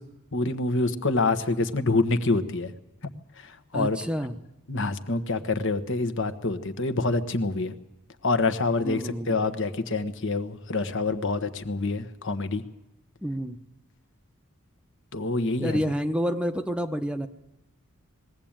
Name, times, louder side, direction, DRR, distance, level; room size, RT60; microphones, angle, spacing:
voice 1, 0.3-2.7 3.0-3.1 3.4-4.0 4.7-7.7 8.2-12.6 15.1-15.8, left 3 dB, 60° left, 11 dB, 1.4 m, -26 dB
voice 2, 3.7-4.4 8.8-9.4 13.2-13.6 15.6-17.3, equal, 5° right, 8 dB, 0.9 m, -29 dB
21.0 x 16.0 x 8.9 m, 0.95 s
head